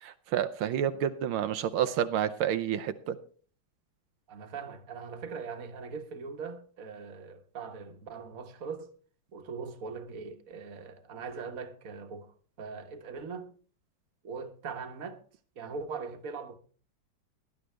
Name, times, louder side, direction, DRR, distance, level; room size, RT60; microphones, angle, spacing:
voice 1, 0.0-3.2, right 9 dB, 85° right, 1.6 m, -29 dB
voice 2, 4.3-8.9 9.3-13.5 14.2-15.2 15.5-16.6, right 5 dB, 45° right, 1.5 m, -41 dB
17.5 x 11.0 x 3.4 m
omnidirectional pair, 2.2 m